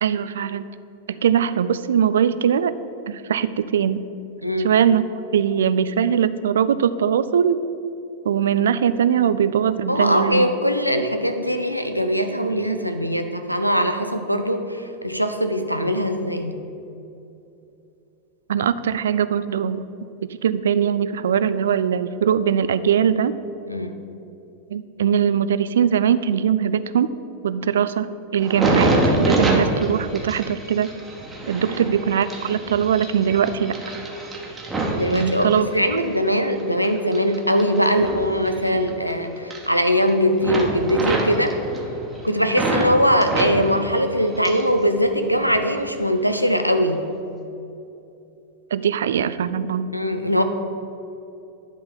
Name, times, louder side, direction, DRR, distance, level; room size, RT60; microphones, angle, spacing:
voice 1, 0.0-0.6 1.1-2.7 3.1-4.1 4.6-5.0 5.3-7.6 8.2-10.5 18.5-19.9 20.4-23.3 24.7-27.1 27.4-28.1 28.3-30.9 31.5-33.8 35.1-35.7 48.7-49.9, right 8 dB, 65° right, 13 dB, 0.3 m, -21 dB
voice 2, 9.9-16.6 23.7-23.9 31.7-31.9 34.9-41.5 42.2-47.0 49.9-50.4, equal, 90° left, 7 dB, 0.6 m, -21 dB
sound 1, 28.4-36.1 36.5-39.1 39.4-40.1 40.4-42.9 43.2-44.8 45.1-45.8 46.3-46.6, right 2 dB, 15° right, 1.4 m, -26 dB
10.5 x 3.9 x 7.0 m, 2.7 s
figure-of-eight pair, 90°, 0 cm